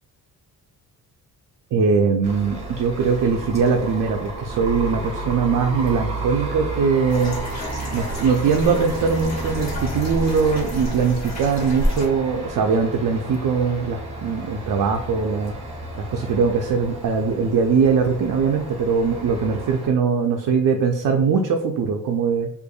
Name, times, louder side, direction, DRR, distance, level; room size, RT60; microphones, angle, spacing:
voice 1, 1.7-7.4 7.9-15.5 16.1-22.5, right 5 dB, 55° right, 3 dB, 0.5 m, -21 dB
sound 1, 2.2-19.9, right 2 dB, 20° right, 1.4 m, -32 dB
sound 2, 7.1-12.1, equal, 45° left, 1.0 m, -30 dB
4.7 x 2.6 x 2.3 m, 0.70 s
cardioid pair, 80°, 38 cm